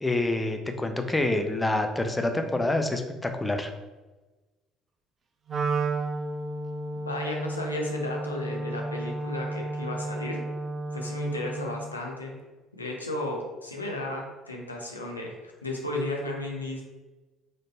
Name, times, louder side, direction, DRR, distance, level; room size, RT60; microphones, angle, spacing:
voice 1, 0.0-3.7, left 2 dB, 15° left, 6 dB, 0.5 m, -27 dB
Wind instrument woodwind instrument, 5.5-11.9, right 2 dB, 35° right, 0.5 m, -32 dB
voice 2, 7.0-10.4 10.9-12.3 12.7-16.8, left 1 dB, 85° left, 0 dB, 0.5 m, -34 dB
4.0 x 3.1 x 2.8 m, 1.2 s
figure-of-eight pair, 55°, 0 cm